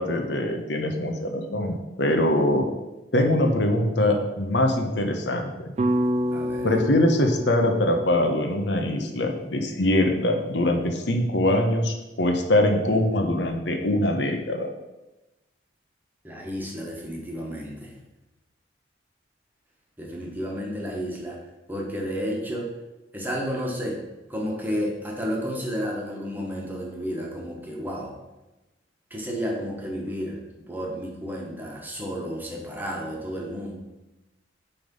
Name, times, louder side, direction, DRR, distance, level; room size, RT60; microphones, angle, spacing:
voice 1, 0.0-2.7 3.1-5.7 6.6-14.7, left 1 dB, 65° left, 3 dB, 0.9 m, -23 dB
sound 1, 5.8-10.0, equal, 35° right, 0.4 m, -29 dB
voice 2, 6.3-6.8 16.2-17.9 20.0-21.4 21.7-22.7 23.1-24.0 24.3-28.1 29.1-33.7, equal, 10° right, -2 dB, 1.4 m, -31 dB
9.7 x 3.6 x 5.4 m, 1.0 s
head